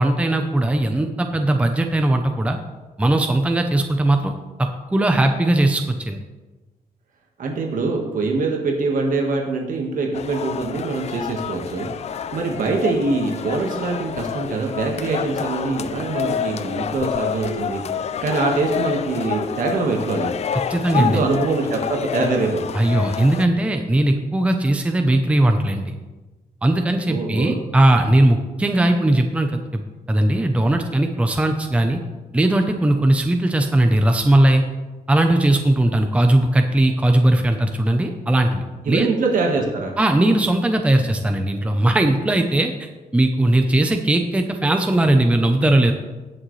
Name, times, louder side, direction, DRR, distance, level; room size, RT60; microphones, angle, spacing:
voice 1, 0.0-2.6 3.0-6.2 20.7-21.2 22.7-25.9 26.6-29.8 30.1-32.0 32.3-34.6 35.1-39.1 40.0-45.9, right 1 dB, 10° right, 5 dB, 0.7 m, -19 dB
voice 2, 7.4-11.9 12.3-17.8 18.2-20.3 20.9-22.6 27.1-27.6 38.8-39.9, right 3 dB, 60° right, 1 dB, 1.6 m, -23 dB
sound 1, 10.1-23.5, left 7 dB, 45° left, 0.4 m, -28 dB
18.5 x 6.4 x 3.2 m, 1.2 s
wide cardioid pair, 145°, 16 cm